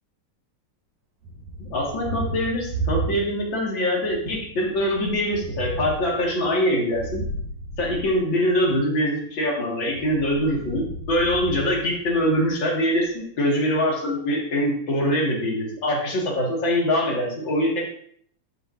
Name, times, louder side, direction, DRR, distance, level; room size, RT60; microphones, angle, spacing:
Thunder, 1.2-3.7 4.0-8.8 9.9-12.5, right 2 dB, 60° right, 2.5 m, -34 dB
voice 1, 1.6-7.2 7.8-17.8, equal, 40° left, -2 dB, 2.3 m, -23 dB
12.5 x 6.8 x 2.7 m, 0.63 s
omnidirectional pair, 4.1 m